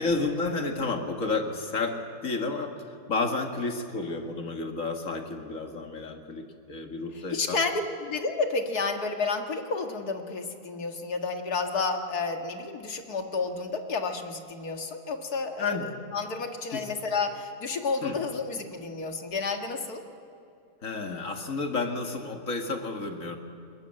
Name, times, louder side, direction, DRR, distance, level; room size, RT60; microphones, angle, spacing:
voice 1, 0.0-2.0 2.2-7.6 15.6-15.9 16.7-16.9 18.0-18.2 20.8-23.4, left 3 dB, 55° left, 4 dB, 2.1 m, -31 dB
voice 2, 7.3-15.8 16.1-20.0, left 4 dB, 75° left, 5 dB, 2.3 m, -31 dB
21.5 x 21.0 x 8.8 m, 2.6 s
omnidirectional pair, 1.7 m